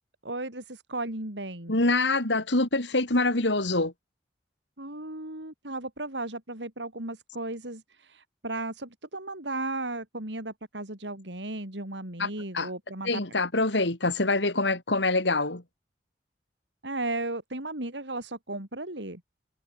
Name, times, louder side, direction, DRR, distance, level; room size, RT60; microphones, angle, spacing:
voice 1, 0.2-1.8 4.8-13.2 16.8-19.2, right 2 dB, 85° right, 5.2 m, -35 dB
voice 2, 1.7-3.9 12.2-12.3 12.5-12.7 13.0-15.6, left 2 dB, 85° left, 3.4 m, -25 dB
head